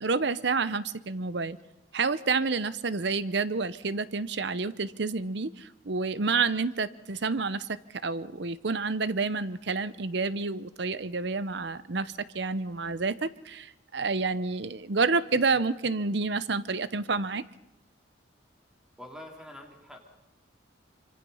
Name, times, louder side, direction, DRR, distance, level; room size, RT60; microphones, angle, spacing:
voice 1, 0.0-1.6 1.9-17.4, right 4 dB, 60° right, 15 dB, 0.8 m, -29 dB
voice 2, 19.0-20.0, left 1 dB, 5° right, 1 dB, 3.2 m, -45 dB
25.5 x 24.5 x 5.6 m, 0.92 s
head